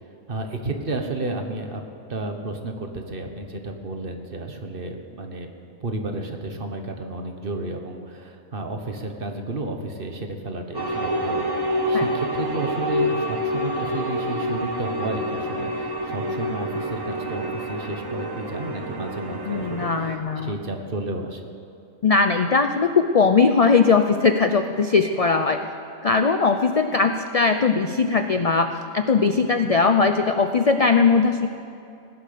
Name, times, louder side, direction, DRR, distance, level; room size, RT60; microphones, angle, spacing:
voice 1, 0.3-1.8 2.1-5.5 5.8-21.4, right 2 dB, 45° right, 4 dB, 1.4 m, -32 dB
sound 1, 10.7-20.2, equal, 20° right, 1.0 m, -27 dB
voice 2, 19.5-20.5 22.0-22.9 23.1-25.6 26.0-31.5, left 4 dB, 55° left, 7 dB, 0.4 m, -20 dB
17.5 x 10.5 x 6.8 m, 2.6 s
omnidirectional pair, 1.4 m